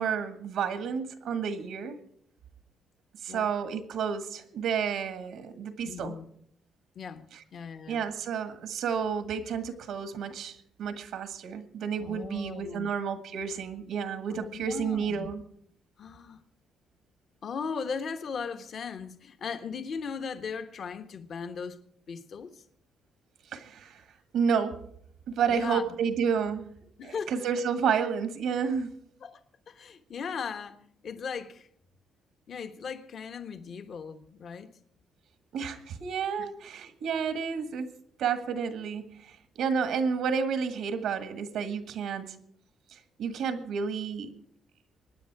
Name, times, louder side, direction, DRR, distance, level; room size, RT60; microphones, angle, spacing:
voice 1, 0.0-2.0 3.2-6.1 7.9-15.4 23.5-24.0 24.3-24.8 25.3-26.7 27.0-28.9 35.5-37.9 38.2-42.3 42.9-44.3, right 6 dB, 85° right, 9 dB, 1.6 m, -31 dB
voice 2, 5.8-6.3 6.9-8.0 12.0-12.9 14.3-15.3 16.0-16.4 17.4-21.8 22.1-22.6 25.5-26.0 27.0-27.3 29.2-31.7 32.5-34.7 36.4-36.5, left 6 dB, 60° left, 8 dB, 1.3 m, -38 dB
24.0 x 9.8 x 4.8 m, 0.67 s
cardioid pair, 90°, 0 cm